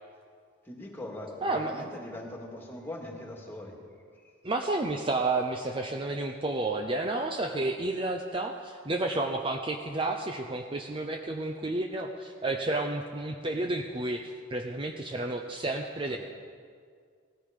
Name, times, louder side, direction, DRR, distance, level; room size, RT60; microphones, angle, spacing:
voice 1, 0.6-3.8 16.1-16.2, left 1 dB, 10° left, -1 dB, 2.2 m, -41 dB
voice 2, 1.4-1.8 4.4-16.2, right 2 dB, 25° right, 3 dB, 0.6 m, -31 dB
18.0 x 13.5 x 5.2 m, 2.1 s
head